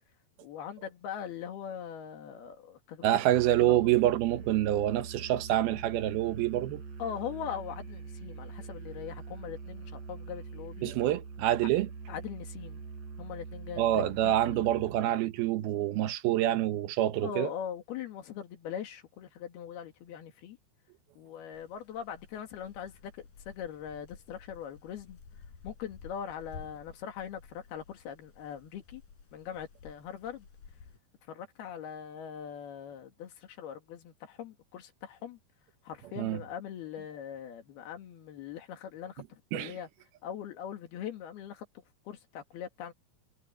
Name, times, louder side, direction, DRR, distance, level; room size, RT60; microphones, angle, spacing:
voice 1, 0.4-3.2 3.7-3.9 7.0-10.9 11.6-11.7 12.1-12.8 13.2-14.8 17.2-20.6 21.2-25.2 25.6-29.0 29.3-30.5 31.3-35.4 35.8-39.9 40.2-41.7 42.1-42.9, left 8 dB, 85° left, 4.1 m, -41 dB
voice 2, 3.0-6.8 10.8-11.9 13.8-17.5 36.2-36.4 39.5-39.7, right 13 dB, 80° right, 2.9 m, -27 dB
Musical instrument, 3.3-15.1, right 5 dB, 45° right, 5.2 m, -44 dB
sound 1, 21.5-31.0, left 5 dB, 60° left, 5.9 m, -53 dB
omnidirectional pair, 4.4 m